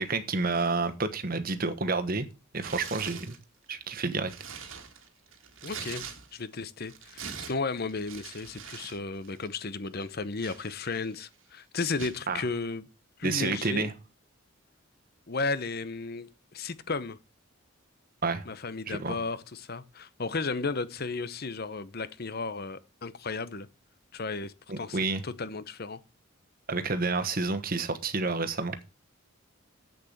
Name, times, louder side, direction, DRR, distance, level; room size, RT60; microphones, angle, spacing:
voice 1, 0.0-2.3 2.5-3.4 3.7-4.3 12.3-12.4 13.2-13.9 18.2-18.4 18.9-19.1 24.7-25.2 26.7-28.8, right 3 dB, 40° right, 1.2 m, -29 dB
Tearing, 2.6-3.4 3.9-6.5 6.8-9.0 9.2-9.5 10.0-11.2 12.0-12.2, right 7 dB, 65° right, 1.7 m, -43 dB
voice 2, 5.6-6.1 6.3-12.9 13.2-13.9 15.3-17.2 18.5-23.7 24.1-26.0, left 3 dB, 45° left, 0.8 m, -34 dB
7.9 x 6.8 x 7.9 m
head